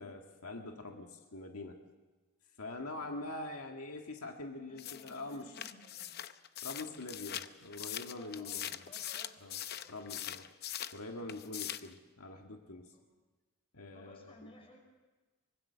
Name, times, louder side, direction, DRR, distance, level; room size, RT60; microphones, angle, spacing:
voice 1, 0.0-1.8 2.6-5.5 6.6-8.8 9.4-9.6 9.9-10.5 10.9-12.9 13.7-14.4, left 2 dB, 90° left, 3 dB, 1.7 m, -44 dB
voice 2, 2.9-3.2 4.7-6.2 8.2-9.9 11.1-11.3 12.9-13.0 13.9-14.8, left 1 dB, 25° left, 2 dB, 5.4 m, -58 dB
sound 1, 4.8-11.0 11.3-11.9, left 11 dB, 45° left, 0.7 m, -42 dB
24.5 x 20.5 x 6.7 m, 1.2 s
head